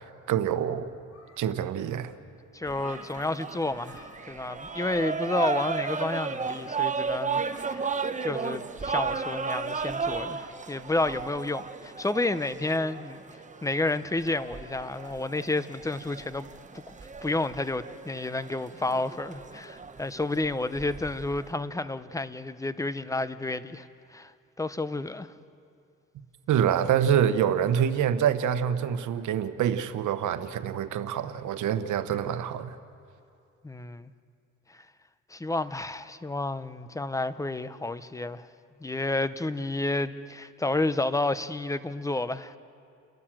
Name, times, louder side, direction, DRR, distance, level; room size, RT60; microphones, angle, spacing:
voice 1, 0.3-0.9 1.4-2.1 26.5-32.8, right 9 dB, 75° right, 1.2 m, -26 dB
sound 1, 0.9-1.8 2.1-2.2 2.6-3.5 3.8-4.4 4.7-4.8 5.3-5.8 6.2-9.8, left 1 dB, 60° left, 6.3 m, -51 dB
voice 2, 2.5-7.9 8.2-13.2 13.6-16.5 17.2-23.9 24.1-24.3 24.6-25.3 33.6-34.1 35.3-38.5 38.8-42.6, left 2 dB, 10° left, 0.8 m, -30 dB
sound 2, 2.6-21.5, right 5 dB, 25° right, 1.0 m, -35 dB
30.0 x 12.5 x 7.6 m
cardioid pair, 90°, 30 cm